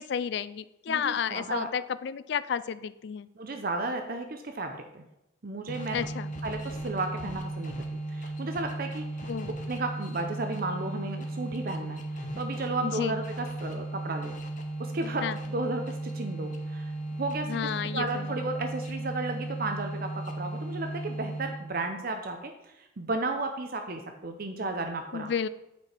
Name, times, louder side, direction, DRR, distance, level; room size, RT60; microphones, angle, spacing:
voice 1, 0.0-3.3 5.9-6.3 9.3-9.5 12.8-13.2 15.2-15.4 17.5-18.4 25.1-25.5, left 7 dB, 55° left, 15 dB, 0.3 m, -32 dB
voice 2, 0.9-1.7 3.4-5.0 5.4-6.0 6.4-9.3 9.7-14.4 14.8-25.3, right 2 dB, 45° right, 5 dB, 0.6 m, -34 dB
sound 1, 5.7-21.8, right 2 dB, 40° left, 0.8 m, -36 dB
8.3 x 4.9 x 4.4 m, 0.89 s
head